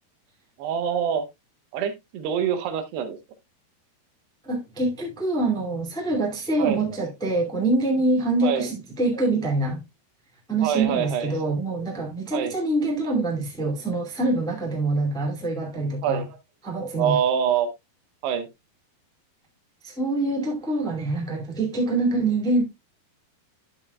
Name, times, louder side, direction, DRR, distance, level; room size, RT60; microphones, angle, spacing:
voice 1, 0.6-1.3 1.7-3.2 6.6-6.9 8.4-8.7 10.6-11.4 12.3-12.5 16.0-16.4 17.0-17.7 18.2-18.5, right 8 dB, 85° right, 3.3 m, -25 dB
voice 2, 4.4-9.8 10.5-16.2 16.6-17.2 19.8-22.6, right 2 dB, ahead, 1.2 m, -25 dB
11.0 x 7.1 x 2.3 m
omnidirectional pair, 4.6 m